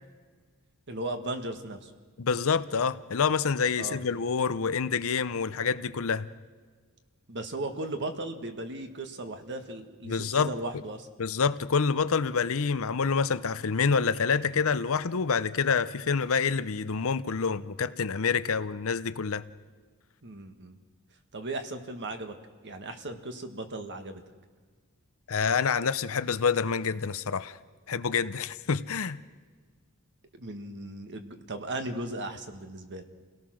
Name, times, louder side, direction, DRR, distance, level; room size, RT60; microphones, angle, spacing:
voice 1, 0.9-1.9 3.8-4.0 7.3-11.1 20.2-20.8 21.3-22.3 22.6-24.2 30.3-33.0, right 2 dB, 55° right, 1.6 m, -36 dB
voice 2, 2.2-6.3 10.1-10.5 11.2-19.4 25.3-27.5 27.9-29.2, left 5 dB, 65° left, 0.7 m, -27 dB
29.0 x 17.5 x 6.3 m
head